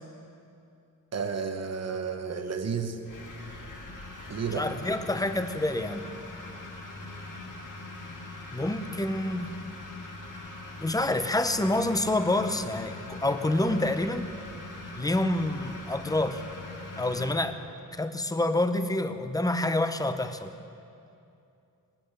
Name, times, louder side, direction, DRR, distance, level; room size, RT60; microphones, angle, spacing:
voice 1, 1.1-3.0 4.3-4.7, right 5 dB, 45° right, 6 dB, 1.0 m, -32 dB
sound 1, 3.0-17.3, left 2 dB, 60° left, 2.1 m, -42 dB
voice 2, 4.6-6.1 8.5-9.5 10.8-14.3 15.0-16.4 17.0-17.6 17.9-20.5, left 1 dB, 10° left, 9 dB, 0.6 m, -27 dB
20.5 x 8.9 x 6.6 m, 2.6 s
wide cardioid pair, 145°, 36 cm